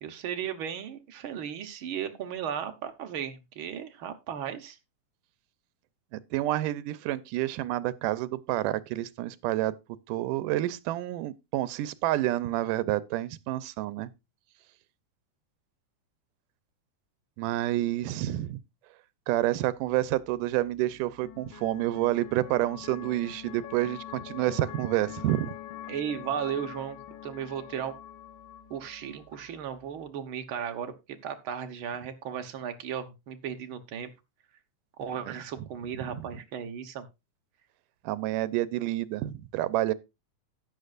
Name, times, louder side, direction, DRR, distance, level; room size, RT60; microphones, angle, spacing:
voice 1, 0.0-4.8 25.9-27.0 27.2-27.9 28.7-30.9 31.2-34.1 35.0-37.0, right 8 dB, 60° right, 1.5 m, -35 dB
voice 2, 6.1-9.7 10.1-14.1 17.4-18.6 19.3-25.5 36.0-36.3 38.0-39.9, right 15 dB, 85° right, 2.3 m, -29 dB
sound 1, 19.8-30.1, left 11 dB, 75° left, 2.2 m, -45 dB
13.0 x 9.6 x 2.5 m
omnidirectional pair, 3.7 m